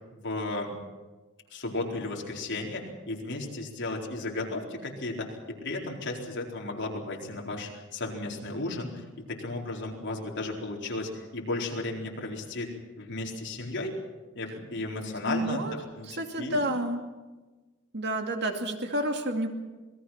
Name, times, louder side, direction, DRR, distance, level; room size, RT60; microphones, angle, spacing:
voice 1, 0.2-0.7 1.5-14.0 14.3-16.8, left 2 dB, 55° left, -1 dB, 4.3 m, -34 dB
voice 2, 15.3-15.7 16.1-17.0 17.9-19.5, right 1 dB, 50° right, 4 dB, 2.5 m, -29 dB
27.5 x 20.0 x 5.9 m, 1.2 s
head